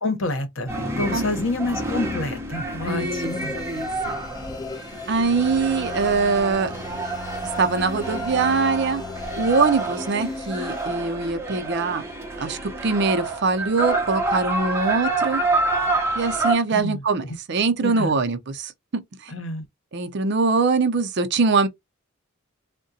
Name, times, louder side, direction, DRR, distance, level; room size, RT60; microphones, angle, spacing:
voice 1, 0.0-0.7 1.0-3.5 16.7-17.0 17.8-18.2 19.3-19.6, left 2 dB, 65° left, 1.0 m, -28 dB
sound 1, 0.7-16.6, right 2 dB, 10° right, 0.8 m, -28 dB
voice 2, 2.8-4.1 5.1-6.7 7.6-9.0 9.4-12.0 12.4-15.4 16.1-19.3 19.9-21.7, right 4 dB, 55° right, 0.5 m, -23 dB
sound 2, 3.0-10.9, left 3 dB, 20° left, 0.3 m, -37 dB
Bowed string instrument, 5.0-10.4, left 3 dB, 40° left, 1.3 m, -39 dB
3.6 x 2.2 x 2.7 m
head